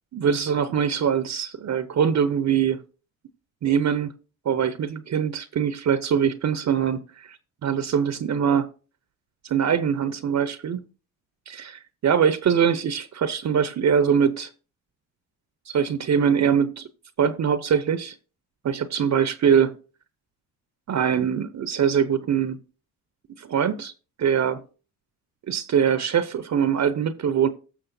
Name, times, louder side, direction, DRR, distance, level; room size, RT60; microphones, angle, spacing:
voice 1, 0.1-2.8 3.6-4.1 4.5-7.4 7.6-8.7 9.5-10.9 11.5-14.5 15.7-16.9 17.2-18.1 18.6-19.8 20.9-22.6 23.4-23.9 24.2-24.6 25.5-27.5, right 7 dB, 45° right, 0.8 m, -23 dB
15.0 x 6.3 x 2.7 m
supercardioid pair, 70°, 39 cm